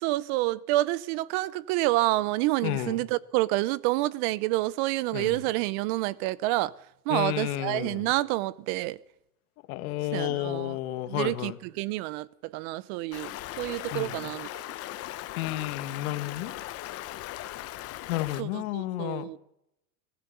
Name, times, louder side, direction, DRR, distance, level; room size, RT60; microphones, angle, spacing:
voice 1, 0.0-6.7 7.1-9.0 10.1-10.7 11.1-11.5 11.8-13.3 13.6-14.5 18.4-19.4, right 18 dB, 45° right, 0.7 m, -28 dB
voice 2, 2.6-3.0 5.1-5.4 7.1-8.1 9.7-11.6 13.9-14.3 15.4-16.6 18.1-19.3, left 14 dB, 70° left, 1.9 m, -32 dB
Stream, 13.1-18.4, left 15 dB, 30° left, 0.9 m, -38 dB
25.0 x 15.5 x 6.9 m
supercardioid pair, 155°, 45 cm